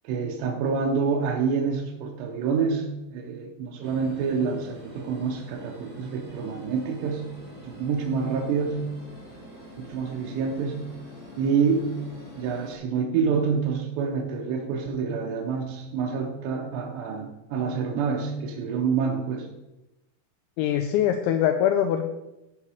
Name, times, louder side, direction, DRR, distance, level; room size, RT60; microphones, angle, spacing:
voice 1, 0.0-7.3 7.6-8.8 9.8-10.8 11.4-11.9 12.4-19.5, right 5 dB, 75° right, 0 dB, 2.7 m, -27 dB
sound 1, 3.8-12.8, equal, 20° right, 0.9 m, -45 dB
voice 2, 20.6-22.1, left 10 dB, 85° left, 6 dB, 2.7 m, -23 dB
13.5 x 4.9 x 4.9 m, 0.96 s
omnidirectional pair, 5.7 m